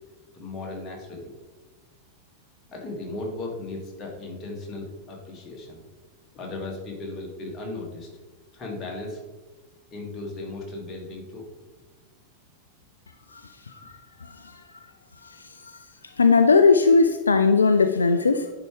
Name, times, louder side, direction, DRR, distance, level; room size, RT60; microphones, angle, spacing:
voice 1, 0.3-1.3 2.7-5.8 6.3-8.1 8.5-9.2 9.9-11.5, left 2 dB, 25° left, -1 dB, 2.0 m, -36 dB
voice 2, 16.2-18.4, left 4 dB, 75° left, 8 dB, 0.3 m, -17 dB
10.5 x 4.8 x 3.3 m, 1.2 s
figure-of-eight pair, 90°, 0 cm